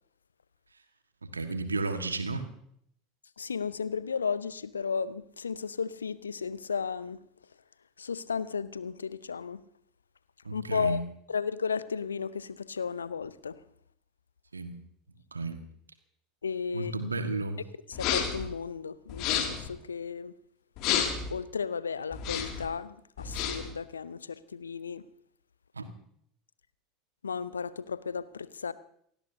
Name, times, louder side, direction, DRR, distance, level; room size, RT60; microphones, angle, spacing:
voice 1, 1.2-2.5 10.4-11.0 14.5-14.8 15.3-15.6 16.7-17.6 25.7-25.9, right 3 dB, 80° right, 8 dB, 1.5 m, -33 dB
voice 2, 3.4-7.2 8.0-9.6 10.5-11.0 11.3-13.5 16.4-16.9 17.9-20.3 21.3-25.0 27.2-28.7, left 6 dB, 75° left, 17 dB, 0.7 m, -34 dB
sound 1, 17.9-18.5 19.1-19.7 20.8-21.3 22.1-22.7 23.2-23.7, left 8 dB, 50° left, 2.4 m, -30 dB
28.5 x 16.0 x 2.7 m, 0.68 s
figure-of-eight pair, 75°, 0 cm